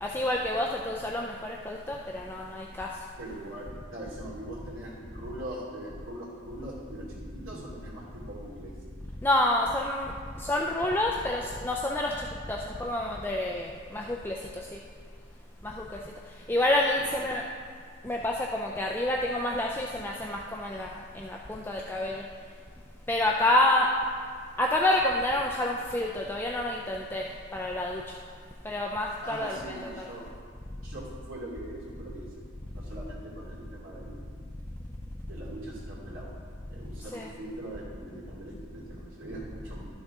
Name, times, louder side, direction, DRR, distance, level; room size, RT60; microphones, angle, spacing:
voice 1, 0.0-2.9 9.2-10.1 10.4-12.1 12.5-14.8 15.6-15.9 16.5-17.4 18.0-22.2 23.1-23.9 24.6-27.3 27.5-28.0 28.6-30.1 37.1-37.3, left 1 dB, 10° left, -1 dB, 0.3 m, -28 dB
voice 2, 3.2-8.7 17.0-17.1 29.2-30.3 30.8-32.3 32.7-34.3 35.3-36.4 36.7-39.9, right 1 dB, 80° right, -5 dB, 2.6 m, -41 dB
12.0 x 6.3 x 3.6 m, 2.1 s
head